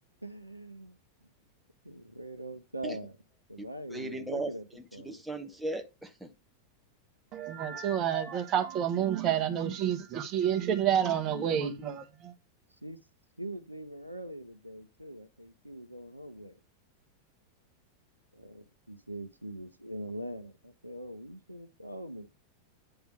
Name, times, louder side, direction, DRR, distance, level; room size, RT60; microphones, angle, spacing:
voice 1, 0.2-1.0 1.8-3.2 3.5-4.7 4.9-5.2 12.8-13.0 13.4-16.6 18.3-22.3, right 1 dB, 85° right, 0.8 m, -42 dB
voice 2, 3.6-4.5 5.0-6.3, right 2 dB, 5° right, 1.0 m, -37 dB
voice 3, 7.3-12.3, right 9 dB, 35° right, 1.3 m, -29 dB
9.0 x 3.4 x 5.2 m
figure-of-eight pair, 90°, 0 cm